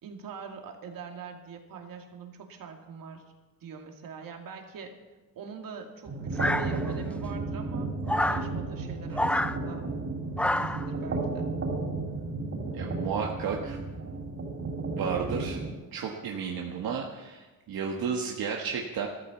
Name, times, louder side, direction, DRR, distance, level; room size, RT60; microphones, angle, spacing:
voice 1, 0.0-3.2 3.6-4.9 5.3-9.9 10.6-11.5, right 6 dB, 75° right, 3 dB, 2.5 m, -43 dB
sound 1, 6.0-15.7, right 3 dB, 45° right, 3.8 m, -33 dB
sound 2, 6.4-7.1 8.1-8.5 9.1-9.6 10.4-10.9, left 1 dB, 5° left, 0.5 m, -27 dB
voice 2, 12.7-13.8 14.9-15.6 15.9-19.1, right 6 dB, 90° right, 0 dB, 1.6 m, -32 dB
14.0 x 13.5 x 7.1 m, 1.2 s
cardioid pair, 130°, 34 cm